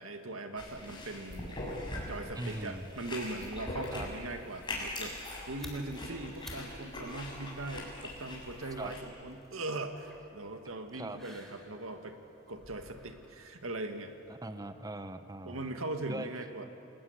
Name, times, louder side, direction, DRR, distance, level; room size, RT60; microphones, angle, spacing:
voice 1, 0.0-1.6 2.1-5.2 5.5-12.2 12.5-14.2 15.5-16.7, right 2 dB, 85° right, 6 dB, 2.1 m, -40 dB
sound 1, 0.6-9.0, left 1 dB, 25° left, 7.1 m, -42 dB
voice 2, 2.4-2.9 3.9-4.1 8.8-8.9 10.9-11.2 14.3-15.6 16.1-16.3, right 2 dB, 20° right, 9 dB, 0.9 m, -40 dB
sound 2, 5.2-14.4, left 1 dB, ahead, 3.7 m, -55 dB
29.5 x 20.5 x 9.7 m, 2.7 s
head